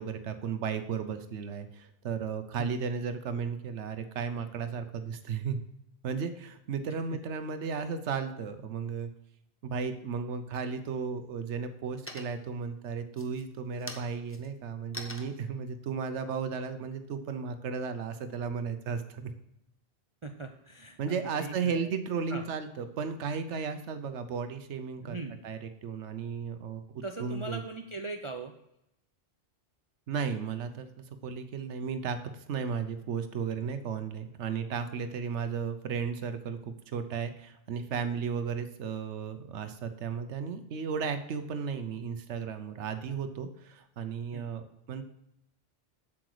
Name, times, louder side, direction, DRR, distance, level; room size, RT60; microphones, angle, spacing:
voice 1, 0.0-5.6 6.0-9.1 9.6-19.3 21.0-25.2 25.4-27.6 30.1-45.0, right 6 dB, 85° right, 9 dB, 1.1 m, -34 dB
sound 1, 11.4-11.8 12.1-12.6 13.1-17.5, left 1 dB, 15° left, 0.8 m, -46 dB
voice 2, 20.2-21.9 22.3-22.5 25.0-25.4 27.0-28.5 44.3-44.5, right 3 dB, 40° right, 5 dB, 0.5 m, -40 dB
7.8 x 7.5 x 4.8 m, 0.84 s
omnidirectional pair, 1.2 m